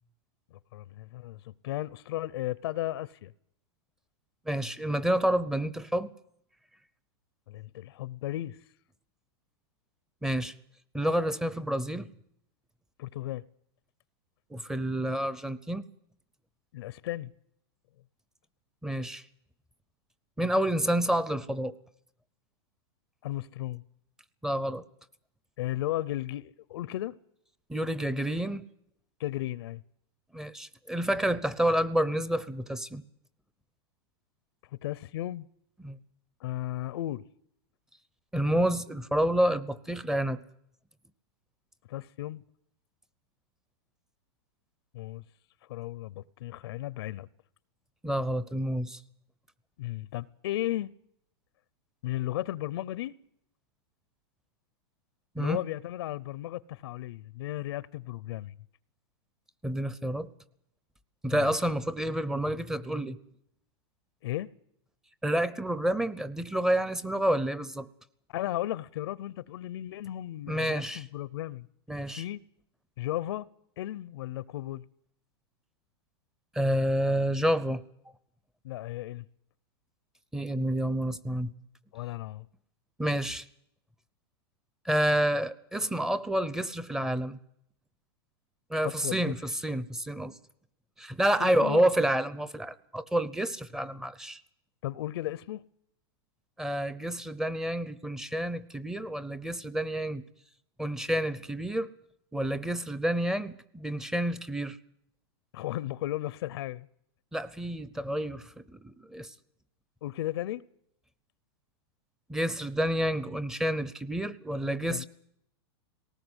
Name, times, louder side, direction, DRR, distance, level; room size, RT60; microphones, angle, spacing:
voice 1, 0.5-3.3 7.5-8.6 13.0-13.4 16.7-17.3 23.2-23.8 25.6-27.1 29.2-29.8 34.8-35.5 36.4-37.2 41.9-42.4 44.9-45.2 45.7-47.3 49.8-50.9 52.0-53.1 55.4-58.5 61.3-61.5 64.2-64.5 68.3-71.7 72.1-72.4 73.0-73.5 73.8-74.8 78.6-79.2 81.9-82.5 89.0-89.3 91.4-91.8 94.8-95.6 105.5-106.9 110.0-110.6 114.9-115.0, left 14 dB, 70° left, 0.7 m, -35 dB
voice 2, 4.5-6.1 10.2-10.5 10.9-12.1 14.5-15.8 18.8-19.2 20.4-21.7 24.4-24.8 27.7-28.6 30.3-33.0 35.8-36.0 38.3-40.4 48.0-49.0 55.3-55.6 59.6-60.3 61.2-63.2 65.2-67.9 70.5-71.0 71.9-72.2 76.5-77.8 80.3-81.5 83.0-83.4 84.8-87.4 88.7-90.4 91.0-94.4 96.6-100.2 100.8-101.9 102.3-104.8 107.3-109.3 112.3-115.0, right 1 dB, 5° right, 0.7 m, -29 dB
19.5 x 18.5 x 8.1 m
supercardioid pair, 155°, 14 cm